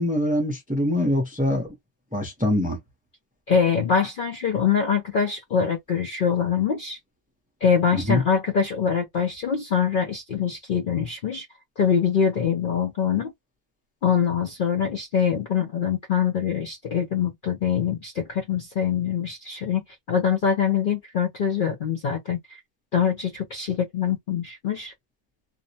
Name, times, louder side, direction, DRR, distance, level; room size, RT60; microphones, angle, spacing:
voice 1, 0.0-1.7 2.1-2.8 7.9-8.2, left 1 dB, 10° right, 0.5 m, -24 dB
voice 2, 3.5-7.0 7.6-11.4 11.8-13.3 14.0-19.8 20.1-22.6 22.9-24.9, left 7 dB, 60° left, 0.5 m, -24 dB
2.6 x 2.0 x 2.7 m
omnidirectional pair, 1.4 m